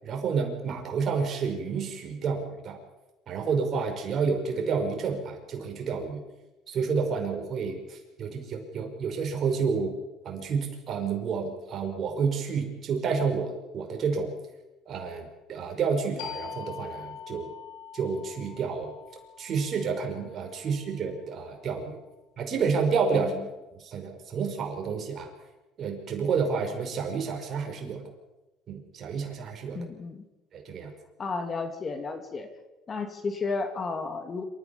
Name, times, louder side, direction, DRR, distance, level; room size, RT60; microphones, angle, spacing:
voice 1, 0.0-2.8 3.3-6.2 6.7-10.0 10.2-14.3 14.9-17.5 17.9-18.9 19.4-22.0 22.4-23.3 23.7-25.3 25.8-28.0 28.7-29.9 30.5-30.9, right 5 dB, 45° right, 2 dB, 5.5 m, -30 dB
sound 1, 16.2-21.5, left 8 dB, 90° left, 3.5 m, -44 dB
voice 2, 29.7-30.2 31.2-32.5 32.9-34.4, left 4 dB, 30° left, 8 dB, 2.6 m, -32 dB
27.0 x 14.5 x 7.3 m, 1.1 s
cardioid pair, 105°, 0 cm